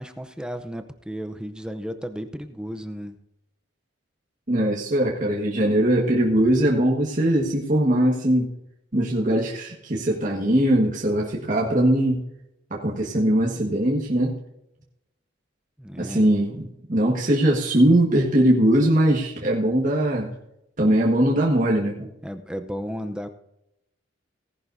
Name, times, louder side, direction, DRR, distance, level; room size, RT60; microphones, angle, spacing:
voice 1, 0.0-3.2 15.8-16.3 22.2-23.3, equal, 5° right, 9 dB, 0.6 m, -34 dB
voice 2, 4.5-8.5 8.9-12.2 12.7-14.3 15.9-20.3 20.8-22.1, right 1 dB, 40° right, -3 dB, 1.6 m, -21 dB
18.0 x 11.0 x 2.7 m, 0.84 s
head